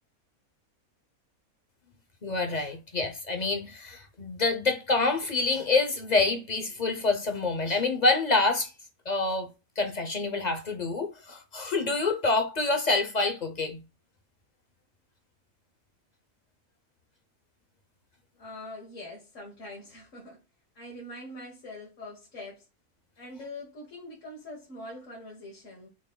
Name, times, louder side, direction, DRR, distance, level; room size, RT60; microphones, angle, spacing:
voice 1, 2.2-8.7 9.1-9.5 9.8-13.8, left 3 dB, 40° left, 0.6 m, -27 dB
voice 2, 18.4-20.4 20.8-22.7 23.2-25.9, left 1 dB, 60° left, 1.6 m, -43 dB
6.1 x 3.9 x 2.2 m
omnidirectional pair, 1.5 m